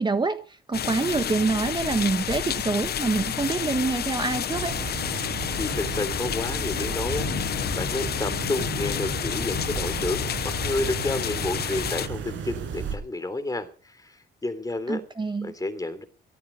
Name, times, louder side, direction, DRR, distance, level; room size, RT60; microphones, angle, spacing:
voice 1, 0.0-4.8 14.9-15.5, right 3 dB, 20° right, 1.3 m, -26 dB
sound 1, 0.7-12.1, left 10 dB, 55° left, 0.7 m, -30 dB
sound 2, 4.5-13.0, right 6 dB, 75° right, 6.0 m, -34 dB
voice 2, 5.6-7.3 7.7-10.3 10.6-15.0 15.4-16.0, left 2 dB, 15° left, 3.3 m, -30 dB
16.5 x 13.5 x 5.3 m
cardioid pair, 90°, 20 cm